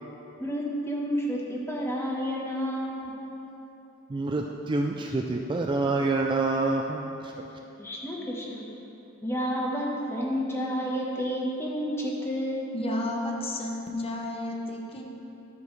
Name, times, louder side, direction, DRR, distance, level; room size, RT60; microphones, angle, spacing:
voice 1, 0.4-3.3 7.8-8.7 9.2-12.7, equal, 15° left, -3 dB, 1.1 m, -30 dB
voice 2, 4.1-7.3, right 3 dB, 25° right, 1 dB, 0.3 m, -27 dB
voice 3, 12.7-15.0, left 1 dB, 30° left, 0 dB, 0.8 m, -32 dB
12.0 x 7.0 x 3.2 m, 3.0 s
head